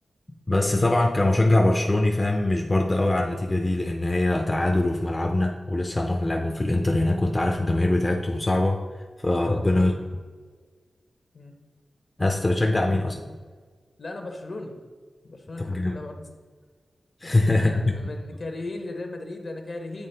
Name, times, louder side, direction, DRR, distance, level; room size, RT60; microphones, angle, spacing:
voice 1, 0.5-8.8 9.2-9.9 12.2-13.1 15.6-16.0 17.2-17.9, left 2 dB, 25° left, 2 dB, 0.5 m, -22 dB
voice 2, 9.4-10.1 11.3-11.5 12.7-13.4 14.0-14.8 15.2-16.2 17.2-20.1, left 2 dB, 55° left, 3 dB, 0.9 m, -37 dB
8.5 x 3.5 x 3.3 m, 1.5 s
wide cardioid pair, 75°, 0 cm